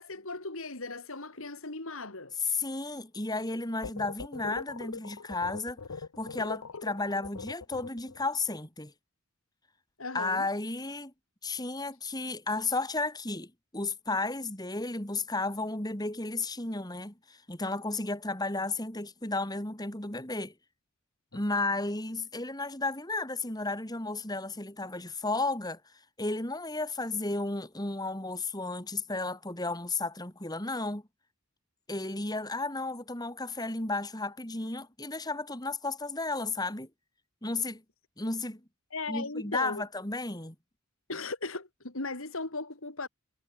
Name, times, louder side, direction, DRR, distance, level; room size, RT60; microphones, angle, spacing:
voice 1, 0.0-2.4 10.0-10.5 21.3-21.4 38.9-39.8 41.1-43.1, left 3 dB, 70° left, 2.9 m, -37 dB
voice 2, 2.4-5.8 6.2-8.9 10.1-11.1 11.4-20.5 21.3-25.8 26.2-31.0 31.9-36.9 37.4-37.8 38.2-38.6 39.1-40.5, left 3 dB, 20° left, 3.1 m, -33 dB
sound 1, 3.8-8.3, left 4 dB, 85° left, 0.9 m, -41 dB
head